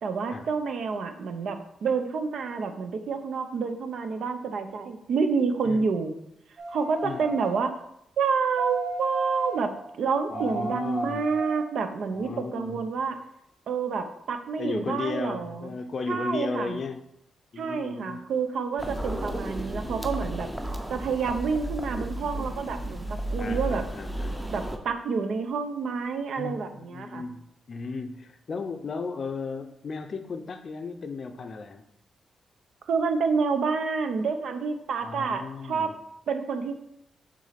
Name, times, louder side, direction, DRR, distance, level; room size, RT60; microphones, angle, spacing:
voice 1, 0.0-6.1 6.7-7.7 8.2-13.2 13.7-15.7 16.1-16.8 17.6-20.5 20.9-23.9 24.5-27.2 32.9-35.9 36.3-36.7, right 5 dB, 65° right, 8 dB, 0.7 m, -28 dB
sound 1, 6.6-7.6 8.6-9.7 10.3-11.6 12.2-12.3, right 2 dB, 35° right, 2.2 m, -35 dB
voice 2, 10.3-11.3 12.1-12.8 14.6-17.0 17.5-18.2 23.4-24.4 26.4-31.8 35.0-36.0, left 4 dB, 40° left, 8 dB, 0.5 m, -35 dB
sound 2, 18.8-24.8, right 1 dB, 5° right, 0.7 m, -33 dB
6.3 x 3.8 x 5.8 m, 0.78 s
wide cardioid pair, 140°, 0 cm